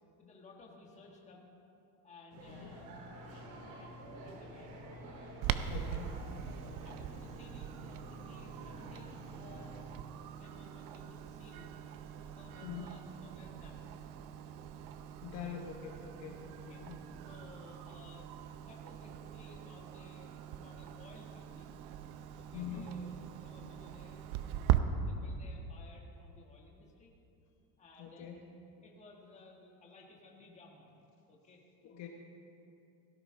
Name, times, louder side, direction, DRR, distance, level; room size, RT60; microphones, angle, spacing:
voice 1, 0.2-1.6 2.0-4.0 4.2-4.7 5.2-6.3 6.8-10.0 10.3-11.7 12.1-14.1 16.7-16.9 17.2-18.3 18.6-21.7 22.4-27.1 27.8-28.5 28.8-30.9 31.3-31.6 32.0-32.1, left 3 dB, 20° left, -1 dB, 1.5 m, -58 dB
sound 1, 2.3-9.8, equal, 80° right, 2.9 m, -50 dB
Clock, 5.4-24.8, right 12 dB, 60° right, 0.7 m, -41 dB
voice 2, 5.7-6.2 12.6-12.9 15.2-17.0 22.5-23.0 28.0-28.4 31.8-32.1, left 7 dB, 45° left, 1 dB, 1.1 m, -44 dB
17.0 x 13.5 x 3.8 m, 2.7 s
cardioid pair, 175°, 37 cm